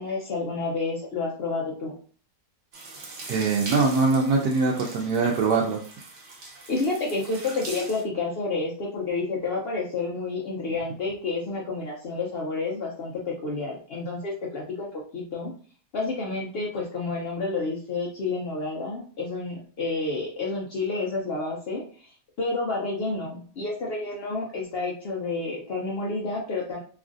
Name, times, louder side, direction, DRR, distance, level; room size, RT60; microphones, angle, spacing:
voice 1, 0.0-2.0 6.7-15.5 15.9-26.8, left 3 dB, 85° left, -2 dB, 0.5 m, -30 dB
sound 1, 2.7-8.0, right 2 dB, 60° right, 0.5 m, -41 dB
voice 2, 3.3-5.8, right 4 dB, 80° right, -1 dB, 1.1 m, -22 dB
3.0 x 2.4 x 2.4 m, 0.43 s
omnidirectional pair, 1.7 m